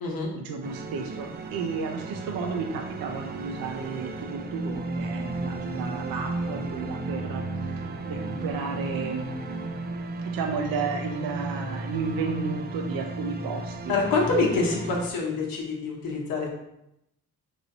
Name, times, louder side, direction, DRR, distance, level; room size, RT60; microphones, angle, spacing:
voice 1, 0.3-7.4 7.8-9.3 10.2-13.9, right 5 dB, 75° right, 2 dB, 0.6 m, -33 dB
sound 1, 0.6-15.1, right 2 dB, 30° right, 0.3 m, -34 dB
voice 2, 13.9-16.6, left 3 dB, 75° left, -2 dB, 0.9 m, -26 dB
3.0 x 2.7 x 4.0 m, 0.82 s
cardioid pair, 95°, 35 cm